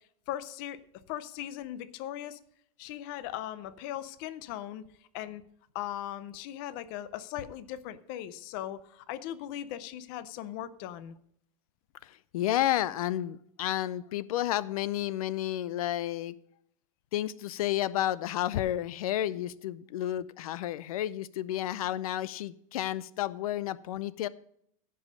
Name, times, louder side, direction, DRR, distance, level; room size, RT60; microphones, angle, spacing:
voice 1, 0.3-0.8 1.1-2.4 2.8-4.8 5.1-5.4 5.7-11.1, left 12 dB, 35° left, 14 dB, 0.5 m, -38 dB
voice 2, 12.0-16.3 17.1-24.3, left 13 dB, 90° left, 18 dB, 0.5 m, -31 dB
15.5 x 5.5 x 5.1 m, 0.69 s
supercardioid pair, 170°, 18 cm